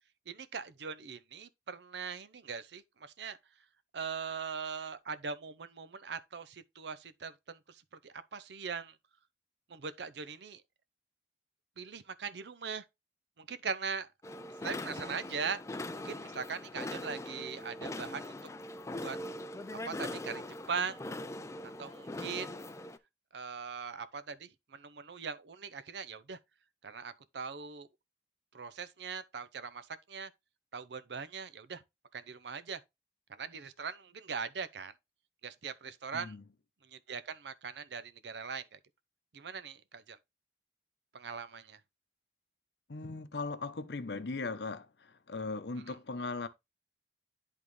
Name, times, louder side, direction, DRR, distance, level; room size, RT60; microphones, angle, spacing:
voice 1, 0.3-3.4 3.9-9.0 9.7-10.6 11.8-12.8 13.4-14.1 14.6-15.6 16.0-18.3 18.9-19.2 19.8-21.0 21.8-22.6 23.3-26.4 26.8-27.9 28.5-30.3 30.7-31.8 32.1-32.8 33.3-34.9 35.4-36.4 36.9-38.8 39.3-40.2 41.1-41.8 45.9-46.0, right 5 dB, 70° right, 0.6 m, -40 dB
sound 1, 14.2-23.0, left 1 dB, 15° left, 0.4 m, -41 dB
voice 2, 36.1-36.4 42.9-46.5, left 3 dB, 70° left, 0.7 m, -38 dB
10.5 x 3.7 x 3.2 m
head